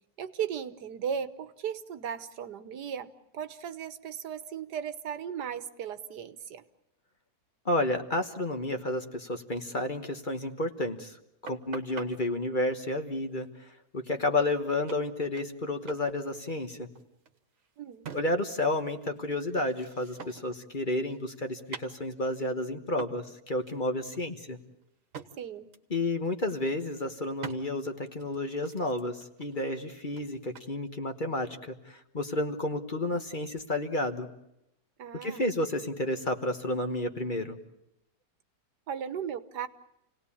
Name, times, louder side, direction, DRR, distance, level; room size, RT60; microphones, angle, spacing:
voice 1, 0.2-6.6 17.8-18.1 25.4-25.7 35.0-35.5 38.9-39.7, right 8 dB, 85° right, 12 dB, 1.7 m, -36 dB
voice 2, 7.6-11.2 11.4-13.5 13.9-16.9 18.1-24.6 25.9-34.3 35.2-37.6, left 2 dB, 30° left, 6 dB, 1.4 m, -31 dB
sound 1, 11.5-12.1 14.2-14.3 14.5-14.6 14.9-15.6 15.9-16.1 16.4-18.6 18.9-20.6 20.9-22.4 23.0-23.3 23.6-23.8 24.1-25.3 25.7-25.9 26.3-26.8 27.4-27.6 28.2-30.7, right 6 dB, 55° right, 1.7 m, -46 dB
29.0 x 18.5 x 8.6 m, 0.85 s
omnidirectional pair, 1.7 m